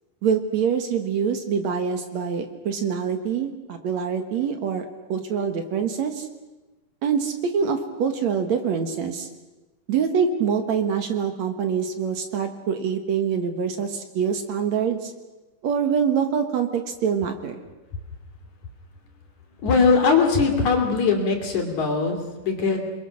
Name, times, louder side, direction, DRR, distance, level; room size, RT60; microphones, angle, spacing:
voice 1, 0.2-6.3 7.0-9.3 9.9-15.1 15.6-17.6, right 7 dB, 60° right, 6 dB, 2.5 m, -25 dB
voice 2, 19.6-22.8, left 5 dB, 60° left, 3 dB, 4.0 m, -20 dB
29.0 x 21.5 x 6.4 m, 1.2 s
omnidirectional pair, 3.8 m